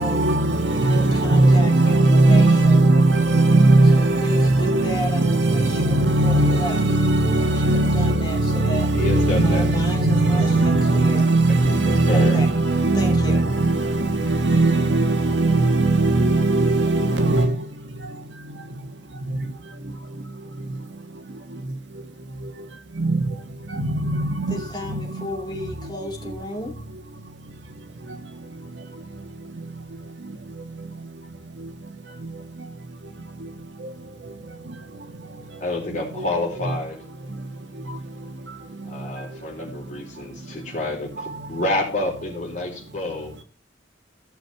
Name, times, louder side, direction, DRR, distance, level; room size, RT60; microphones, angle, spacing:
voice 1, 0.0-17.6 23.0-23.2 23.8-24.6 24.9-25.0, right 2 dB, 85° right, 1.4 m, -18 dB
voice 2, 0.7-2.9 3.9-6.8 7.5-8.9 9.4-11.2 12.1-12.5 12.9-13.4 24.5-26.8, equal, 25° left, 2.8 m, -33 dB
voice 3, 8.9-9.6 10.2-10.3 11.5-12.4 35.6-37.0 38.9-43.4, left 2 dB, 40° left, 3.7 m, -28 dB
14.0 x 6.1 x 4.7 m
head